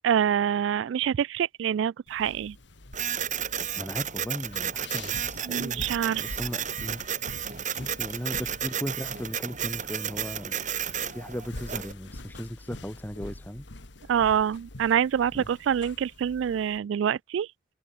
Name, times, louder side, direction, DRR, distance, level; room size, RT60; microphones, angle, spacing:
voice 1, 0.0-2.6 5.5-6.3 14.1-17.5, right 8 dB, 75° right, 0.3 m, -26 dB
sound 1, 2.1-16.8, left 2 dB, 70° left, 2.2 m, -45 dB
Printer, 2.9-11.9, right 9 dB, 40° right, 2.7 m, -32 dB
voice 2, 3.8-7.0 7.8-10.6 11.1-13.6 15.3-15.5, equal, 10° left, 1.5 m, -37 dB
head